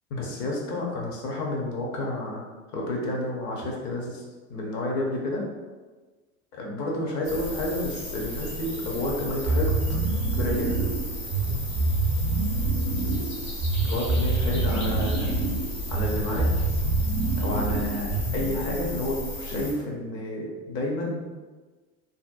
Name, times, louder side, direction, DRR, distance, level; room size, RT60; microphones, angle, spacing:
voice 1, 0.1-2.4 2.7-4.2 4.5-5.4 6.5-10.0 10.3-10.8 13.8-15.4 15.9-16.5 17.4-21.2, left 1 dB, 40° left, -2 dB, 0.7 m, -30 dB
sound 1, 7.2-19.7, equal, 75° left, 1.2 m, -34 dB
sound 2, 9.5-18.7, right 2 dB, 65° right, 0.5 m, -26 dB
2.6 x 2.0 x 2.4 m, 1.3 s
hypercardioid pair, 80°, 43 cm